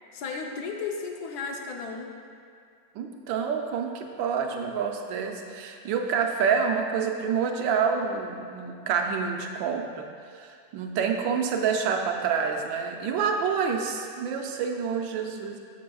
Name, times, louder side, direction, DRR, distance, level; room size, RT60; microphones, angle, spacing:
voice 1, 0.1-2.1, left 4 dB, 65° left, 2 dB, 1.2 m, -34 dB
voice 2, 2.9-10.1 10.3-15.6, right 6 dB, 85° right, 3 dB, 1.4 m, -28 dB
13.5 x 6.5 x 2.3 m, 2.3 s
omnidirectional pair, 2.0 m